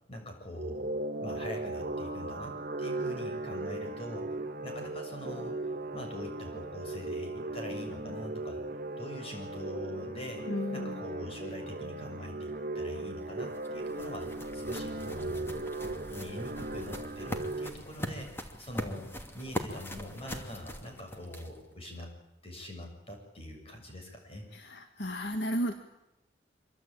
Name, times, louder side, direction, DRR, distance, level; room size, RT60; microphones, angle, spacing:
voice 1, 0.1-0.9 1.2-4.3 4.6-5.6 5.9-8.6 9.0-10.5 10.7-15.6 16.1-22.1 22.4-24.5, left 1 dB, 35° left, 3 dB, 7.1 m, -43 dB
sound 1, 0.5-17.7, right 2 dB, 50° right, 1.4 m, -37 dB
voice 2, 10.5-11.0 24.5-25.7, equal, 70° left, 6 dB, 1.9 m, -33 dB
sound 2, 13.2-21.7, equal, 15° left, 2.6 m, -41 dB
25.5 x 24.5 x 8.8 m, 0.88 s
head